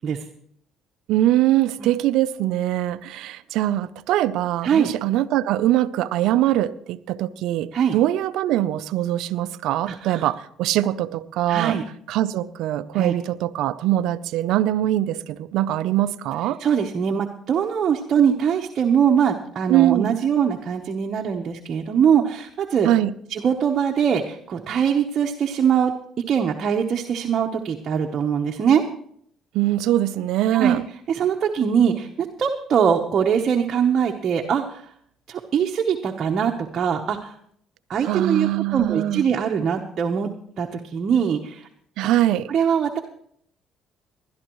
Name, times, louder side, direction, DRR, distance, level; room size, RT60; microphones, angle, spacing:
voice 1, 1.1-11.8 12.1-16.6 19.7-20.1 22.8-23.1 29.5-30.8 38.0-39.2 42.0-42.5, right 13 dB, 75° right, 13 dB, 0.6 m, -22 dB
voice 2, 9.9-10.3 11.5-11.8 12.9-13.1 14.8-14.9 16.6-22.9 23.3-25.9 26.3-28.8 30.5-30.8 31.1-34.9 35.3-37.3 37.9-40.3 40.6-41.7 42.0-42.1 42.5-43.0, right 7 dB, 50° right, 2 dB, 1.1 m, -22 dB
20.0 x 12.0 x 3.1 m, 0.64 s
supercardioid pair, 85°, 0 cm